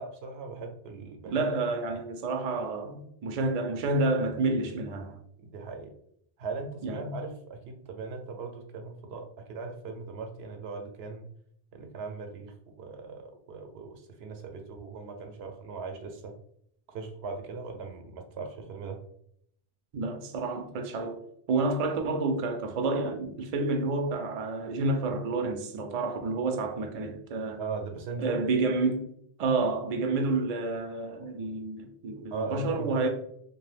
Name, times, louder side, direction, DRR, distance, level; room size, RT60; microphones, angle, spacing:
voice 1, 0.0-1.4 1.9-2.0 5.5-5.9 6.4-11.3 11.7-16.3 16.9-19.0 27.6-28.5 32.3-33.0, right 4 dB, 85° right, 0.8 m, -39 dB
voice 2, 1.3-5.2 6.8-7.2 19.9-21.2 21.5-27.6 28.2-29.0 29.4-33.1, right 3 dB, 55° right, 0.4 m, -29 dB
2.6 x 2.2 x 3.2 m
omnidirectional pair, 1.0 m